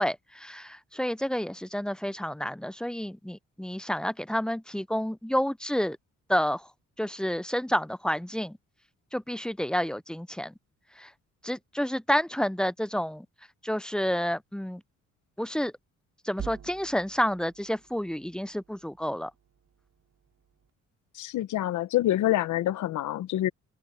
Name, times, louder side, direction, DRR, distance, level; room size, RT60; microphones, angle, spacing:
voice 1, 0.0-6.0 6.3-6.7 7.0-8.6 9.1-10.5 11.0-11.1 11.4-13.3 13.6-14.8 15.4-15.7 16.2-19.3, equal, 5° left, 0.5 m, -29 dB
sound 1, 16.4-20.7, right 8 dB, 60° right, 4.3 m, -47 dB
voice 2, 21.1-23.5, left 14 dB, 75° left, 1.0 m, -26 dB
cardioid pair, 90°, 30 cm